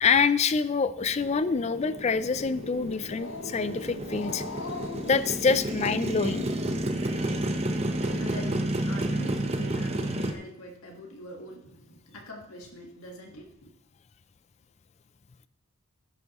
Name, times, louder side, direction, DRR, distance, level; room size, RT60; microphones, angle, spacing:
voice 1, 0.0-4.4 5.0-6.5, left 5 dB, 30° left, 14 dB, 0.3 m, -26 dB
Growling, 1.0-6.4, left 4 dB, 55° left, 0.7 m, -42 dB
Motorcycle, 1.0-10.3, right 1 dB, 30° right, 0.7 m, -31 dB
voice 2, 7.9-13.7, equal, 75° left, 1 dB, 1.6 m, -43 dB
16.5 x 7.1 x 3.0 m, 0.78 s
head